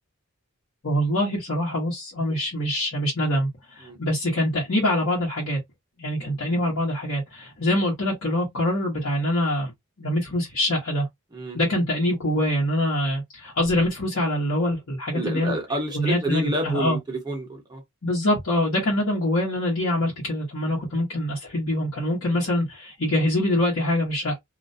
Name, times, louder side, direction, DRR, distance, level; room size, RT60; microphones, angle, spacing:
voice 1, 0.8-5.6 6.0-9.7 10.0-11.1 11.5-15.6 15.9-17.0 18.0-24.4, left 1 dB, 65° left, 1.0 m, -24 dB
voice 2, 15.1-17.8, right 1 dB, 20° right, 0.9 m, -29 dB
2.4 x 2.1 x 2.6 m
head